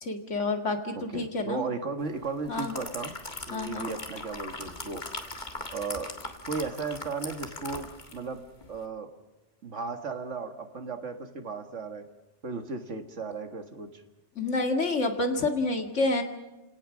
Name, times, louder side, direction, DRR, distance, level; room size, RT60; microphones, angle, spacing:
voice 1, 0.0-1.6 2.5-2.7 3.5-3.9 14.4-16.2, left 2 dB, 80° left, 4 dB, 2.3 m, -28 dB
voice 2, 0.9-3.1 3.5-5.0 5.7-6.1 6.5-8.4 8.7-9.1 9.6-12.1 12.4-14.0, right 4 dB, 90° right, 6 dB, 2.0 m, -35 dB
sound 1, 2.2-8.3 8.6-8.8, left 2 dB, 40° left, 1.9 m, -40 dB
29.5 x 17.5 x 6.3 m, 1.0 s
omnidirectional pair, 1.2 m